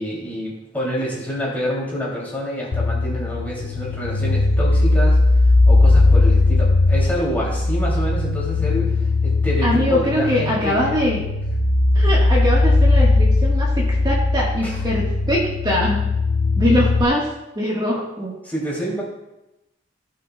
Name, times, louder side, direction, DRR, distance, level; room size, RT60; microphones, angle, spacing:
voice 1, 0.0-11.0 14.6-14.8 18.4-19.0, equal, 10° left, -6 dB, 2.8 m, -27 dB
sound 1, 2.7-17.0, left 2 dB, 65° left, 0.5 m, -18 dB
voice 2, 9.6-11.2 11.9-16.0 16.6-17.3 17.5-18.3, equal, 25° right, -4 dB, 1.5 m, -22 dB
16.5 x 5.7 x 2.3 m, 0.93 s
head